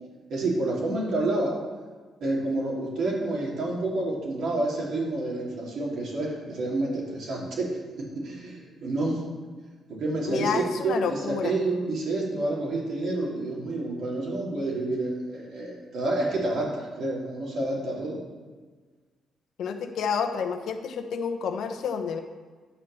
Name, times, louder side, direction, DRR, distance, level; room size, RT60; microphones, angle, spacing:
voice 1, 0.3-1.6 2.2-9.2 10.0-18.2, right 2 dB, 70° right, -4 dB, 3.3 m, -29 dB
voice 2, 10.3-11.5 19.6-22.2, left 6 dB, 70° left, 7 dB, 0.9 m, -29 dB
10.0 x 4.8 x 7.4 m, 1.5 s
cardioid pair, 90°, 0 cm